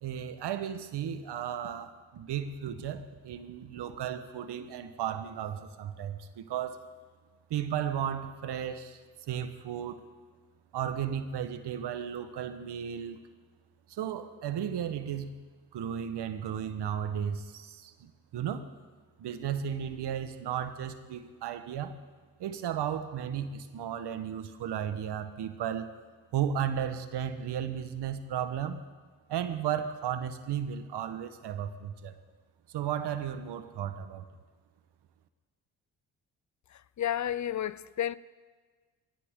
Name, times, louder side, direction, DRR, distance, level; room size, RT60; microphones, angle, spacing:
voice 1, 0.0-6.8 7.5-9.0 9.3-10.1 10.7-13.2 13.9-15.4 15.7-18.7 19.2-22.0 22.4-25.9 26.3-28.8 29.3-32.2 32.7-34.2, right 9 dB, 70° right, 1.3 m, -34 dB
voice 2, 37.0-38.2, left 10 dB, 45° left, 0.6 m, -31 dB
22.0 x 17.0 x 3.8 m
supercardioid pair, 55°, 42 cm